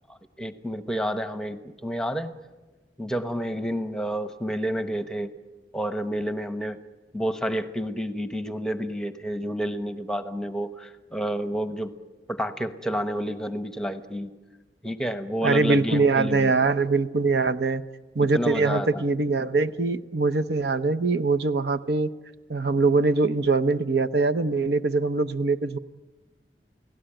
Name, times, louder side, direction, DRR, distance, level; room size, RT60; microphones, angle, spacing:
voice 1, 0.1-2.3 3.0-5.3 5.7-6.8 7.1-11.9 12.3-14.3 14.8-16.5 18.3-19.0, equal, 5° left, 9 dB, 1.0 m, -29 dB
voice 2, 15.4-17.8 18.1-22.1 22.5-25.8, right 3 dB, 65° right, 10 dB, 0.8 m, -23 dB
29.5 x 17.5 x 9.0 m, 1.2 s
head